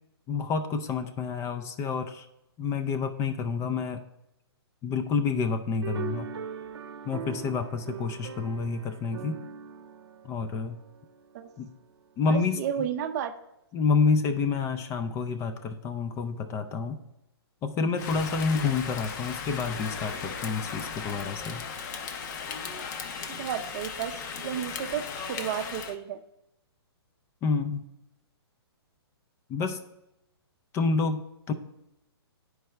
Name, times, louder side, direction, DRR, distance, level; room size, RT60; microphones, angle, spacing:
voice 1, 0.3-2.3 2.6-4.0 4.8-6.3 7.0-9.4 10.2-10.8 11.6-11.7 12.2-12.9 13.7-17.0 17.6-21.6 27.4-27.9 29.5-29.8 30.7-31.5, left 4 dB, 20° left, 9 dB, 0.4 m, -28 dB
sound 1, 5.8-11.4, right 7 dB, 75° right, 0.7 m, -40 dB
voice 2, 12.3-13.4 23.3-26.2, right 9 dB, 40° right, 8 dB, 0.5 m, -32 dB
Rain, 18.0-26.0, left 6 dB, 45° left, 0.7 m, -36 dB
10.0 x 4.7 x 3.2 m, 0.88 s
hypercardioid pair, 135°, 14 cm